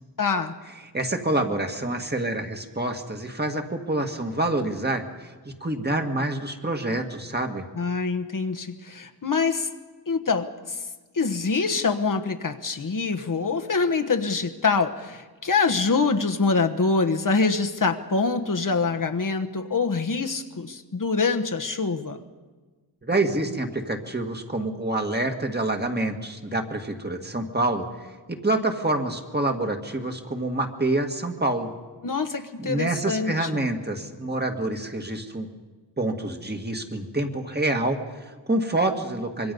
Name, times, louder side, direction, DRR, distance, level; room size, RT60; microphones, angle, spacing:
voice 1, 0.2-0.6 7.7-9.7 10.1-10.8 11.1-22.2 32.0-33.6, left 4 dB, 50° left, 5 dB, 1.3 m, -25 dB
voice 2, 0.9-7.7 23.0-31.7 32.6-35.5 36.0-39.5, right 2 dB, 25° right, 4 dB, 1.9 m, -27 dB
25.5 x 23.0 x 5.4 m, 1.3 s
wide cardioid pair, 100°, 42 cm